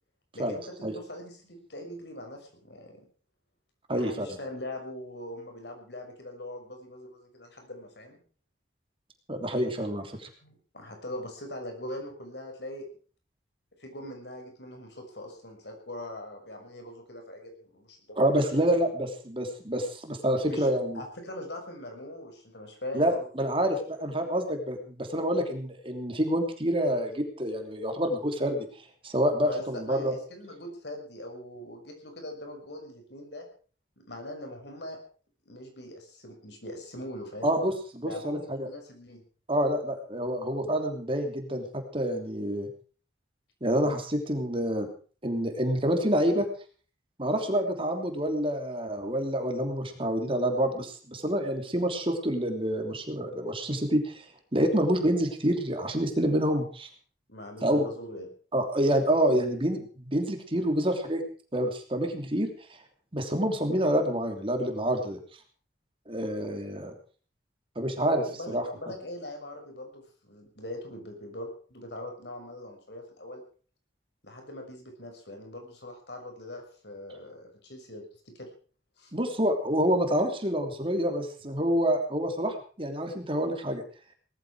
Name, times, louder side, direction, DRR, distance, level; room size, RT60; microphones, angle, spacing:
voice 1, 0.3-3.0 3.9-8.2 10.4-12.9 13.8-18.6 20.5-20.7 20.9-23.3 29.4-33.5 34.0-35.0 35.5-37.5 38.0-39.2 57.3-58.3 68.3-73.4 74.2-78.5 79.0-79.1, left 1 dB, 70° left, 4 dB, 6.1 m, -41 dB
voice 2, 3.9-4.3 9.3-10.3 18.1-21.0 22.9-28.7 29.0-30.1 37.4-38.7 39.5-42.7 43.6-44.9 45.2-46.5 47.2-54.2 54.5-56.9 57.6-57.8 58.5-61.2 61.5-62.5 63.1-65.2 66.1-66.9 67.7-68.6 79.1-83.8, equal, 30° right, 5 dB, 3.1 m, -27 dB
19.0 x 14.0 x 4.9 m, 0.41 s
head